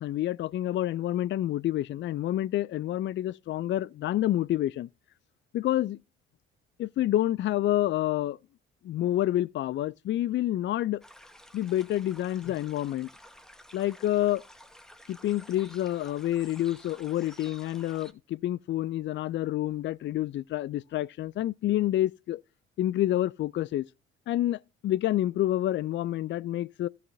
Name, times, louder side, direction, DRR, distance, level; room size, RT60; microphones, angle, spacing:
voice 1, 0.0-4.9 5.5-6.0 6.8-8.4 8.8-11.0 11.5-13.1 13.7-14.4 15.1-22.4 22.8-23.9 24.3-26.9, left 13 dB, 40° left, 0.4 m, -28 dB
sound 1, 11.0-18.1, equal, ahead, 1.3 m, -52 dB
16.5 x 5.8 x 2.7 m
figure-of-eight pair, 50°, 31 cm